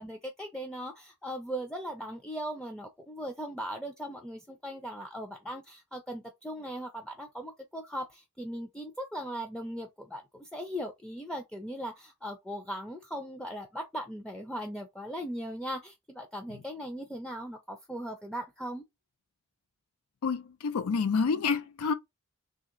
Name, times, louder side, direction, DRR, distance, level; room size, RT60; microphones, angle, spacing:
voice 1, 0.0-18.8, equal, 5° left, 0.4 m, -39 dB
voice 2, 20.2-21.9, left 5 dB, 90° left, 0.4 m, -28 dB
3.2 x 2.8 x 3.7 m
head